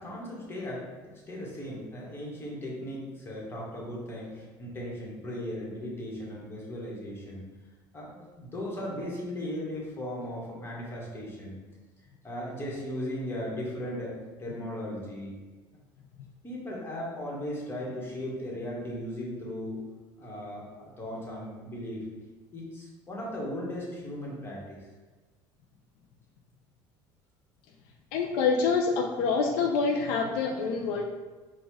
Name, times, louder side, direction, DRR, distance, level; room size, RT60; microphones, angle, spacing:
voice 1, 0.0-7.5 7.9-11.6 12.2-15.4 16.4-19.8 20.2-22.0 22.5-24.8, equal, 25° left, -4 dB, 1.3 m, -37 dB
voice 2, 28.1-31.0, left 5 dB, 75° left, 2 dB, 0.5 m, -26 dB
4.1 x 2.4 x 4.6 m, 1.3 s
cardioid pair, 120°, 10 cm